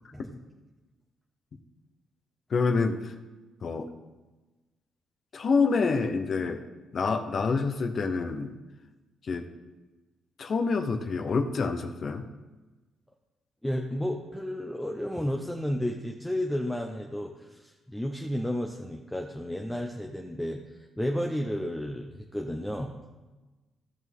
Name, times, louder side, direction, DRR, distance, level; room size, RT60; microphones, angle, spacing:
voice 1, 2.5-3.1 3.6-3.9 5.3-6.6 6.9-8.5 9.3-9.5 10.4-12.2, left 4 dB, 50° left, 6 dB, 1.0 m, -27 dB
voice 2, 13.6-23.0, equal, 5° left, 2 dB, 0.8 m, -32 dB
16.0 x 6.1 x 3.7 m, 1.2 s
cardioid pair, 90°, 0 cm